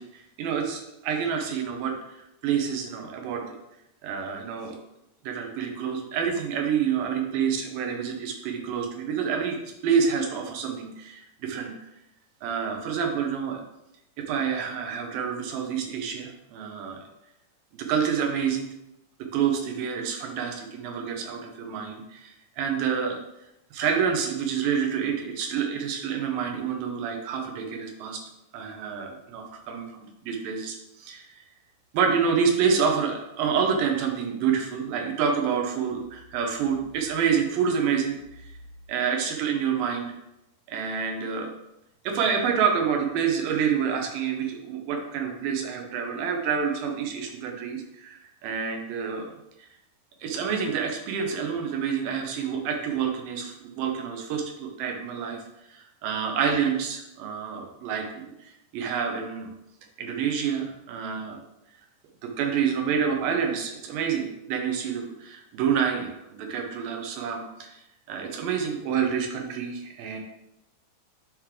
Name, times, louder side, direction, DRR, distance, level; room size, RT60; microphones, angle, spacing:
voice 1, 0.0-2.0 2.4-3.6 4.0-4.8 5.2-9.6 9.8-11.7 12.4-13.6 14.2-17.0 17.7-18.7 19.3-23.2 23.7-28.2 28.5-30.0 30.2-31.4 31.9-38.4 38.9-40.1 40.7-41.5 42.0-49.3 50.2-55.4 55.7-58.3 58.7-59.5 60.0-61.4 62.2-67.8 68.1-70.2, right 7 dB, 80° right, 3 dB, 2.6 m, -28 dB
9.0 x 3.3 x 3.7 m, 0.85 s
omnidirectional pair, 3.9 m